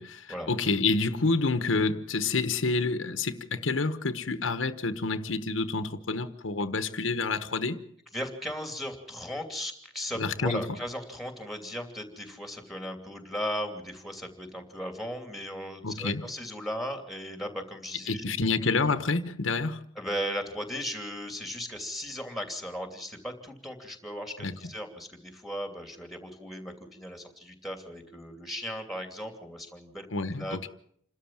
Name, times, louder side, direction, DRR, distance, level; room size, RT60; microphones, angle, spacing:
voice 1, 0.0-7.8 10.2-10.6 15.8-16.2 18.1-19.8 24.4-24.5 30.1-30.7, left 3 dB, 85° left, 1.2 m, -28 dB
voice 2, 8.1-18.2 20.0-30.1 30.3-30.7, equal, ahead, 2.8 m, -37 dB
28.0 x 13.0 x 7.6 m
head